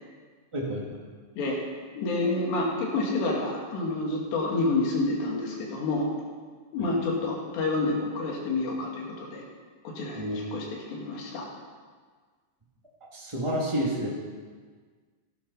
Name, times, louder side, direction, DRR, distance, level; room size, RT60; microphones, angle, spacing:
voice 1, 0.5-0.8 10.2-10.4 13.1-14.1, equal, 25° right, -5 dB, 0.6 m, -29 dB
voice 2, 2.0-6.1 6.7-9.4 9.8-11.5, left 2 dB, 90° left, -2 dB, 4.7 m, -28 dB
16.0 x 11.5 x 5.6 m, 1.5 s
omnidirectional pair, 4.8 m